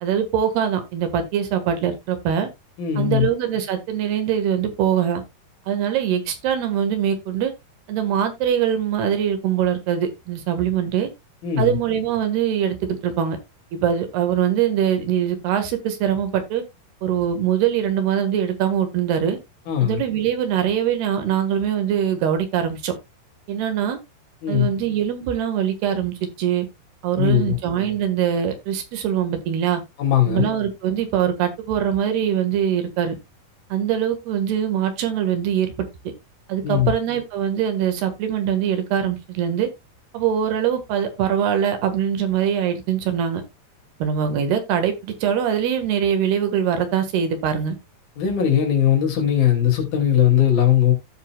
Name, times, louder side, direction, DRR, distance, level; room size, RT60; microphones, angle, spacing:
voice 1, 0.0-2.5 3.0-5.2 5.7-7.5 7.9-11.1 11.6-13.4 13.7-16.6 17.0-19.4 19.8-22.9 23.5-24.0 24.5-26.7 27.0-29.8 30.3-33.2 33.7-35.9 36.5-39.7 40.1-43.4 44.0-47.8, right 9 dB, 80° right, 3.5 m, -22 dB
voice 2, 2.8-3.2 11.4-11.8 19.7-20.0 24.4-24.7 27.2-27.6 30.0-30.5 36.6-36.9 48.2-50.9, left 10 dB, 65° left, 4.1 m, -19 dB
15.5 x 5.6 x 2.3 m
omnidirectional pair, 4.7 m